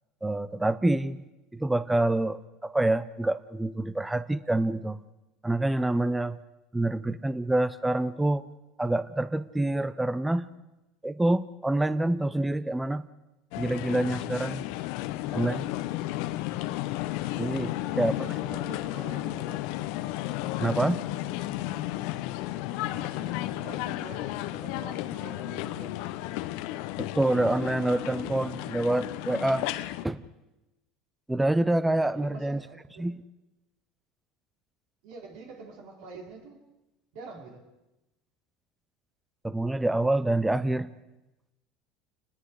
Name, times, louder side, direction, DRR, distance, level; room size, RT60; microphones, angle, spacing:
voice 1, 0.2-1.2 1.5-5.0 5.4-6.4 6.7-8.5 8.8-10.5 11.0-13.1 13.6-14.6 15.3-15.7 17.4-18.1 20.6-21.0 27.0-29.7 30.0-30.2 31.3-32.6 33.0-33.2 39.4-40.9, right 1 dB, 5° right, 15 dB, 0.7 m, -26 dB
sound 1, 13.5-30.0, left 15 dB, 70° left, 0.9 m, -33 dB
voice 2, 17.6-19.7 22.7-26.0 32.1-33.1 35.0-36.6 37.1-37.7, right 3 dB, 70° right, 1 dB, 4.8 m, -46 dB
28.5 x 20.5 x 4.9 m, 1.0 s
supercardioid pair, 120°, 0 cm